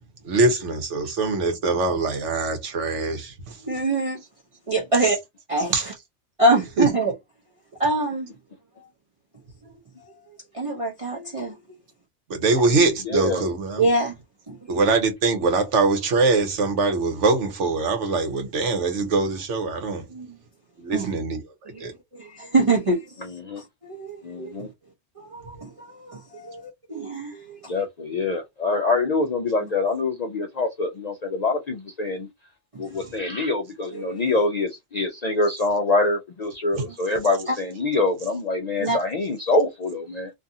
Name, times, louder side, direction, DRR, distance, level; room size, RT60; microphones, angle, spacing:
voice 1, 0.2-3.6 5.0-5.1 5.7-5.9 6.8-6.9 12.3-13.9 14.7-20.1 20.8-21.9 36.7-36.8, right 3 dB, 85° right, 1.1 m, -23 dB
voice 2, 3.7-4.2 4.7-5.2 5.5-5.7 6.4-7.1 7.8-8.3 10.5-11.6 13.8-14.1 14.5-14.6 20.1-20.4 20.9-21.1 21.7-21.8 22.1-23.1 23.8-24.7 25.2-27.6 29.6-29.7 33.0-33.1 33.9-34.2 37.5-37.6 38.8-39.0, right 2 dB, 35° right, 0.7 m, -24 dB
voice 3, 13.1-13.5 23.4-23.6 24.2-24.7 27.7-32.3 32.8-40.3, left 3 dB, 60° left, 0.4 m, -25 dB
2.6 x 2.4 x 2.6 m
omnidirectional pair, 1.2 m